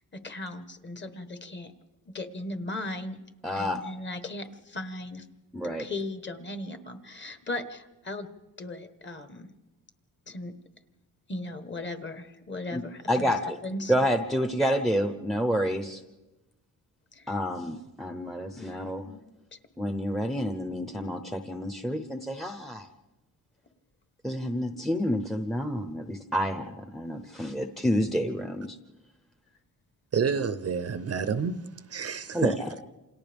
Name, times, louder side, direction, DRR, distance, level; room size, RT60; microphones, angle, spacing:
voice 1, 0.2-1.7 2.1-3.2 3.5-5.2 5.8-8.3 8.6-9.5 10.3-10.5 11.3-13.9 17.1-17.4 18.6-19.2 19.5-19.6, left 2 dB, 30° left, 1.3 m, -37 dB
voice 2, 3.4-3.8 5.5-5.8 12.7-12.8 13.1-13.6 13.9-16.0 17.3-19.1 19.8-22.9 24.2-28.8 32.3-32.7, equal, ahead, 0.7 m, -29 dB
voice 3, 30.1-31.6 31.9-32.5, right 6 dB, 40° right, 0.7 m, -28 dB
28.5 x 27.0 x 3.5 m
wide cardioid pair, 155°, 37 cm